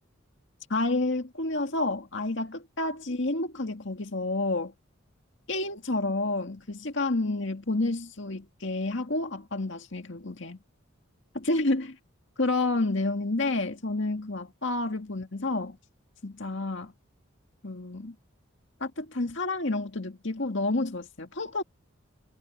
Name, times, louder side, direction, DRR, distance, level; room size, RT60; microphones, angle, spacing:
voice 1, 0.7-4.7 5.5-10.6 11.3-12.0 12.4-15.8 16.2-16.9 17.6-18.1 18.8-21.6, left 2 dB, 60° left, 2.1 m, -29 dB
head